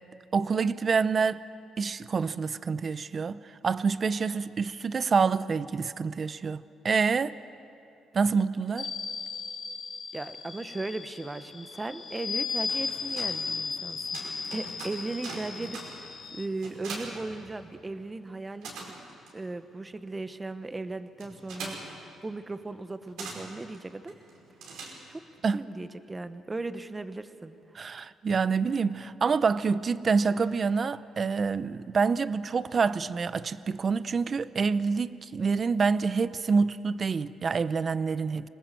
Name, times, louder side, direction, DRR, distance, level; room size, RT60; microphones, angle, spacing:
voice 1, 0.3-1.4 1.8-7.4 8.1-8.9 25.4-25.6 27.7-38.5, right 5 dB, 40° right, 0.7 m, -27 dB
sound 1, 8.8-16.4, left 5 dB, 45° left, 2.5 m, -36 dB
voice 2, 10.1-14.2 14.5-19.0 19.3-24.1 25.1-25.2 25.5-27.5, right 2 dB, 20° right, 1.2 m, -37 dB
sound 2, 12.4-18.0 18.3-25.4, right 3 dB, 85° right, 5.0 m, -44 dB
26.0 x 19.0 x 7.7 m
cardioid pair, 90°, 0 cm